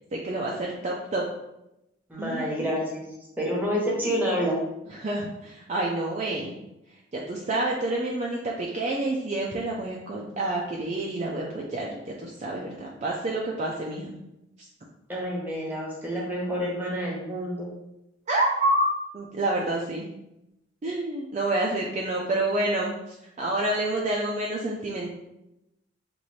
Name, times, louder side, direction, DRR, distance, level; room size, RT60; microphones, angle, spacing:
voice 1, 0.2-1.2 2.2-2.4 5.0-6.6 7.1-14.2 18.3-20.1 20.8-22.9 23.4-25.1, right 1 dB, 35° right, -2 dB, 0.4 m, -28 dB
voice 2, 2.1-3.0 3.4-4.6 15.1-17.7, equal, 10° right, -3 dB, 0.9 m, -28 dB
3.1 x 2.5 x 4.0 m, 0.88 s
head